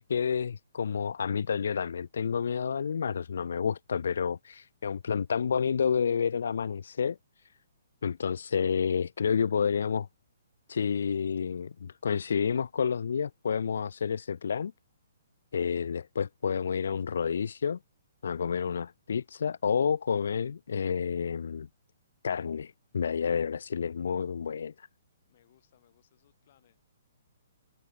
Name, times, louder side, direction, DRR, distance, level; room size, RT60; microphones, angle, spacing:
voice 1, 0.0-7.5 8.0-10.1 10.7-14.7 15.5-17.8 18.2-21.7 22.2-24.9, left 6 dB, 75° left, 0.4 m, -30 dB
voice 2, 25.2-26.8, left 11 dB, 50° left, 7.3 m, -66 dB
hypercardioid pair, 145°, 0 cm